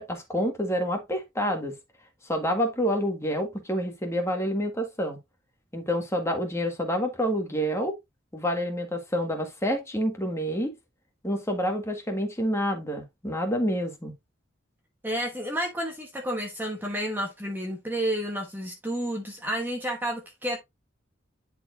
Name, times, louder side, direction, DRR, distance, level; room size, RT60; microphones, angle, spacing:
voice 1, 0.0-1.7 2.3-5.2 5.7-7.9 8.3-10.7 11.2-14.1, equal, 15° left, 1.7 m, -28 dB
voice 2, 15.0-20.6, equal, 10° right, 1.2 m, -30 dB
10.5 x 4.5 x 2.6 m
head